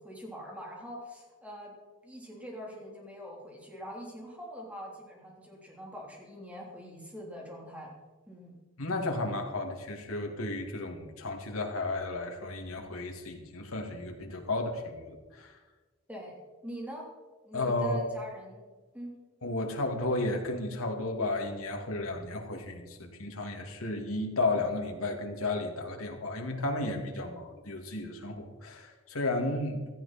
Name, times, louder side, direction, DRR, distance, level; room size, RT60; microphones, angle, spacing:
voice 1, 0.0-1.8 2.0-7.9 8.3-8.6 16.1-16.4 16.6-17.1 17.4-18.7 18.9-19.2, equal, 5° right, -2 dB, 3.5 m, -44 dB
voice 2, 8.8-15.5 17.5-18.0 19.4-29.8, left 2 dB, 80° left, 3 dB, 2.4 m, -33 dB
16.0 x 14.0 x 4.4 m, 1.3 s
head